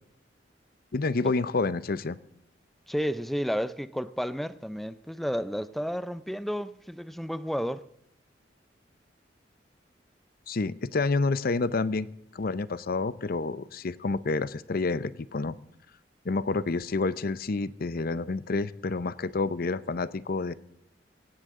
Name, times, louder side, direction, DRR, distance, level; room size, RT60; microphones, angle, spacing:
voice 1, 0.9-2.2 10.5-15.5 16.2-20.5, left 3 dB, 55° left, 0.6 m, -29 dB
voice 2, 2.9-7.8, equal, ahead, 0.4 m, -31 dB
17.0 x 16.5 x 3.7 m
head